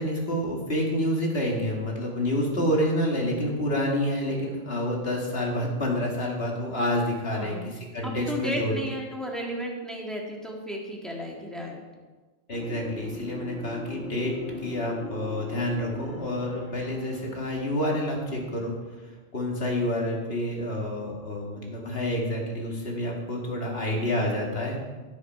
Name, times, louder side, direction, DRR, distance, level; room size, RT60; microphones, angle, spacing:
voice 1, 0.0-8.8 12.5-18.7 19.3-24.8, left 1 dB, 55° left, -1 dB, 2.3 m, -28 dB
voice 2, 7.3-7.7 8.0-11.8, equal, ahead, -2 dB, 1.9 m, -34 dB
sound 1, 12.5-18.2, equal, 80° left, 2.6 m, -39 dB
16.0 x 6.8 x 4.6 m, 1.3 s
omnidirectional pair, 1.2 m